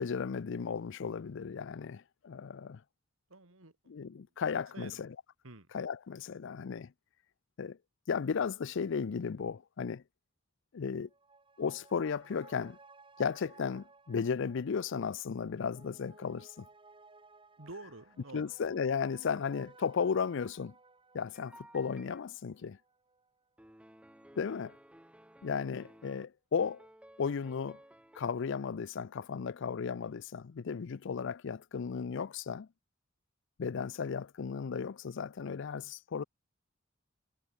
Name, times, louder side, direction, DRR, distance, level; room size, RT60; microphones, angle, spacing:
voice 1, 0.0-2.8 3.9-5.1 5.7-6.9 7.6-7.8 8.1-10.0 10.7-11.1 11.6-12.8 13.2-16.7 18.3-20.7 21.1-22.8 24.4-24.8 25.4-26.9 27.2-27.8 28.1-32.7 33.6-36.2, left 6 dB, 65° left, 0.5 m, -35 dB
voice 2, 3.3-4.0 4.7-5.0 5.4-5.7 17.6-18.5 24.3-24.4, right 2 dB, 85° right, 2.7 m, -49 dB
sound 1, 11.0-23.8 24.2-24.3, right 3 dB, 25° right, 5.8 m, -60 dB
sound 2, 21.3-22.2 23.6-26.2 26.6-28.2, right 1 dB, 5° right, 2.1 m, -57 dB
head